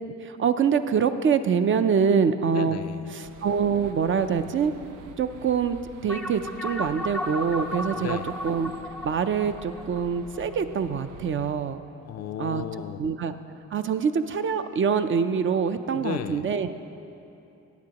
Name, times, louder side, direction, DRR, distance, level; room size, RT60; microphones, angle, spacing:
voice 1, 0.2-2.8 3.1-4.7 5.2-5.8 6.0-8.2 8.4-8.7 9.0-11.8 12.4-12.7 13.0-13.3 13.7-16.7, right 6 dB, 40° right, 9 dB, 0.5 m, -25 dB
voice 2, 2.5-3.1 8.0-8.4 12.0-13.1 15.9-16.5, left 9 dB, 55° left, 10 dB, 0.4 m, -34 dB
sound 1, 3.2-11.5, right 6 dB, 85° right, 0.6 m, -47 dB
sound 2, 6.1-10.9, equal, ahead, 0.6 m, -35 dB
15.0 x 9.6 x 2.9 m, 2.8 s
cardioid pair, 90°, 30 cm